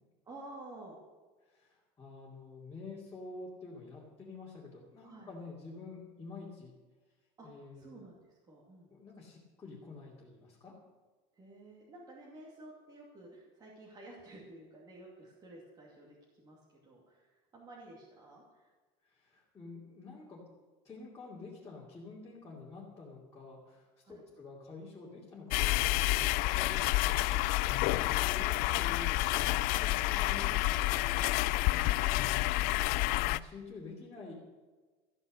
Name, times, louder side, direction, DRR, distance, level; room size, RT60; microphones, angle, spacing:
voice 1, 0.2-1.0 5.0-5.3 7.4-7.5 7.7-8.9 11.3-18.7 24.0-24.2 30.6-31.8 32.0-32.9, right 2 dB, 25° right, -5 dB, 2.5 m, -52 dB
voice 2, 1.5-6.7 7.4-7.9 8.9-10.7 19.0-20.4 20.8-30.8 31.7-32.3 33.0-34.3, left 3 dB, 15° left, -6 dB, 2.7 m, -48 dB
sound 1, 25.5-33.4, left 18 dB, 60° left, 0.4 m, -29 dB
14.5 x 9.7 x 6.5 m, 1.3 s
cardioid pair, 170°, 17 cm